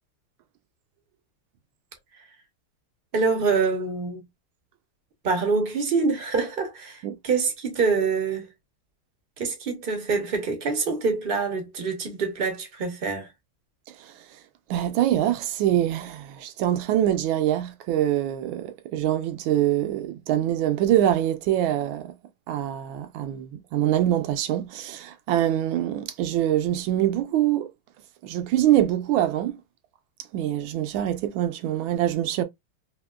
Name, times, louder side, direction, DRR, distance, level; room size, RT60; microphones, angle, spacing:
voice 1, 3.1-4.2 5.2-8.5 9.4-13.3, right 4 dB, 55° right, 0.6 m, -25 dB
voice 2, 14.7-22.1 22.5-27.7 28.2-29.6 30.3-32.4, right 12 dB, 75° right, 1.2 m, -24 dB
3.5 x 2.8 x 2.2 m
omnidirectional pair, 2.4 m